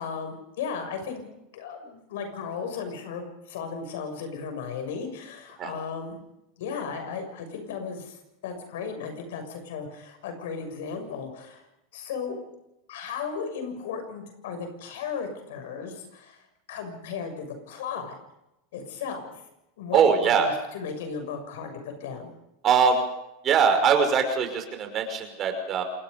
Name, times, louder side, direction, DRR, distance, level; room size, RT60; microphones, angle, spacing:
voice 1, 0.0-6.2 6.6-11.6 11.9-12.4 12.9-16.4 16.7-18.2 18.7-19.3 19.8-22.3, left 6 dB, 80° left, 6 dB, 6.7 m, -35 dB
voice 2, 19.9-20.5 22.6-23.0 23.4-25.8, right 6 dB, 35° right, 6 dB, 5.7 m, -22 dB
27.5 x 20.0 x 5.3 m, 0.88 s
supercardioid pair, 120°, 0 cm